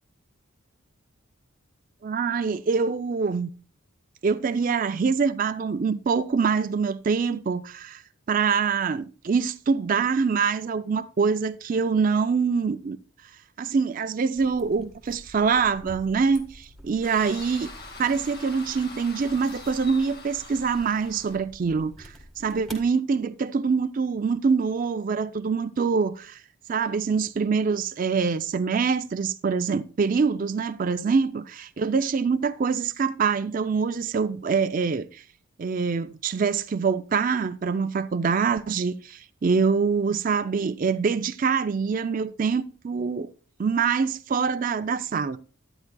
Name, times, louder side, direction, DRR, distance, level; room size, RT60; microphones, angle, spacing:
voice 1, 2.0-3.5 4.2-8.0 8.3-13.0 13.6-17.7 18.0-26.4 26.7-35.2 35.6-43.3 43.6-45.4, right 5 dB, 40° right, 0.3 m, -25 dB
sound 1, 14.3-22.9, equal, ahead, 1.6 m, -48 dB
sound 2, 17.0-21.4, left 3 dB, 50° left, 1.8 m, -43 dB
10.5 x 9.7 x 2.2 m
head